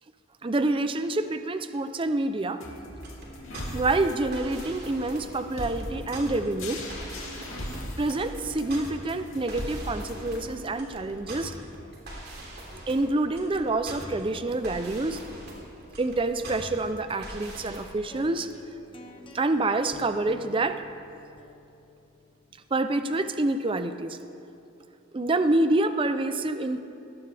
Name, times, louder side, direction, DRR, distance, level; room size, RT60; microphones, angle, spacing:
voice 1, 0.4-2.6 3.7-6.8 8.0-11.5 12.9-15.2 16.0-18.5 19.3-20.8 22.7-24.2 25.1-26.8, right 2 dB, 25° right, 9 dB, 0.5 m, -27 dB
sound 1, 2.6-10.6, left 1 dB, 80° left, 2.6 m, -39 dB
sound 2, 2.9-17.8, right 1 dB, 50° right, 3.4 m, -42 dB
sound 3, 18.1-24.1, left 1 dB, 25° left, 1.1 m, -50 dB
19.0 x 16.5 x 3.4 m, 2.7 s
head